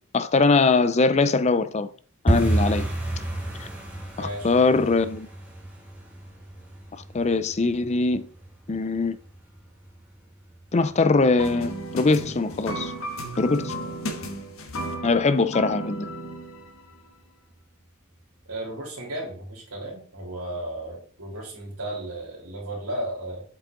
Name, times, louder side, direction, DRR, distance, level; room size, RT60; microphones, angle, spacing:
voice 1, 0.1-1.9 2.2-2.9 3.6-3.7 4.2-5.3 6.9-8.3 8.7-9.2 10.7-12.9 13.4-13.8 15.0-16.1, left 3 dB, 30° left, 0.4 m, -22 dB
sound 1, 2.3-13.0 13.2-13.9 14.2-14.5 14.8-15.1 15.4-15.5 16.0-16.6 16.9-17.0 17.5-17.6, right 1 dB, 5° right, 1.6 m, -31 dB
voice 2, 4.2-4.5 18.5-23.4, right 1 dB, 90° right, 3.3 m, -34 dB
sound 2, 11.4-16.9, right 1 dB, 70° left, 1.3 m, -34 dB
7.8 x 5.6 x 3.8 m
head